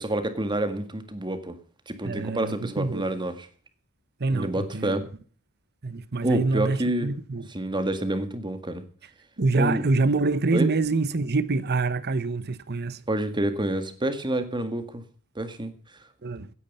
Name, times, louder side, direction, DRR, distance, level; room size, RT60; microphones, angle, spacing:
voice 1, 0.0-1.6 1.9-3.5 4.3-5.1 6.2-7.1 7.5-8.8 9.5-9.8 10.5-10.7 13.1-15.0 15.4-15.7, right 1 dB, 20° right, 1.8 m, -28 dB
voice 2, 2.0-3.0 4.2-5.0 5.8-7.5 9.4-13.0 16.2-16.5, right 3 dB, 45° right, 0.9 m, -26 dB
16.5 x 9.8 x 5.4 m
head